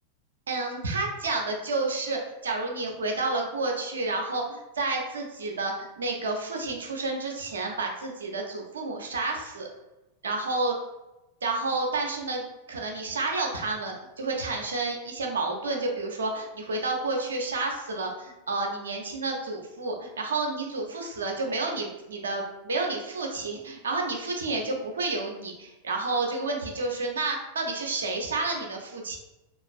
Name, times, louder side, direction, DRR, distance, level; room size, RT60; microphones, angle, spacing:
voice 1, 0.5-9.7 10.2-10.8 11.4-29.2, right 3 dB, 70° right, 2 dB, 0.5 m, -30 dB
3.1 x 2.4 x 2.4 m, 0.99 s
figure-of-eight pair, 90°, 0 cm